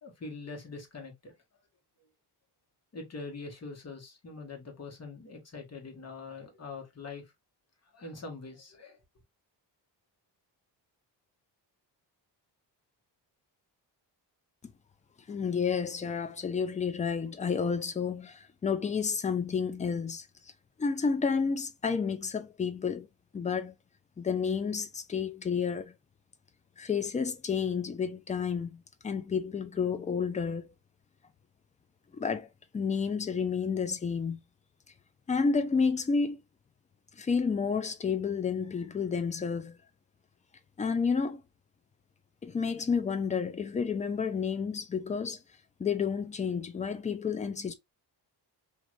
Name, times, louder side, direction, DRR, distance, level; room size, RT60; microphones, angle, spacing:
voice 1, 0.0-1.3 2.9-7.3 7.8-9.0, left 3 dB, 35° left, 1.2 m, -43 dB
voice 2, 15.3-20.3 20.8-23.1 23.3-23.7 24.2-25.9 26.8-30.7 32.1-32.5 32.7-34.4 35.3-36.4 37.2-39.8 40.8-41.4 42.4-45.4 45.8-47.7, left 5 dB, 20° left, 0.4 m, -30 dB
3.1 x 2.6 x 2.4 m
cardioid pair, 105°, 42 cm